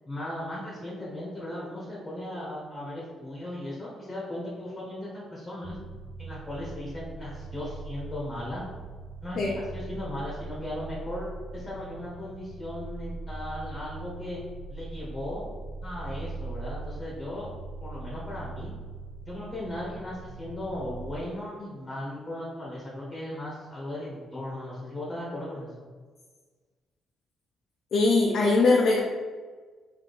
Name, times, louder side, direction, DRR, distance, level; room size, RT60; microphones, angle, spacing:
voice 1, 0.0-5.8 6.2-8.6 9.2-14.4 14.7-15.4 15.8-17.5 17.8-18.7 19.2-25.9, left 1 dB, 20° left, -6 dB, 1.2 m, -37 dB
sound 1, 5.6-21.2, right 3 dB, 75° right, 1.0 m, -41 dB
voice 2, 27.9-29.0, left 3 dB, 65° left, -2 dB, 0.5 m, -21 dB
3.7 x 2.7 x 4.0 m, 1.5 s
cardioid pair, 90°, 0 cm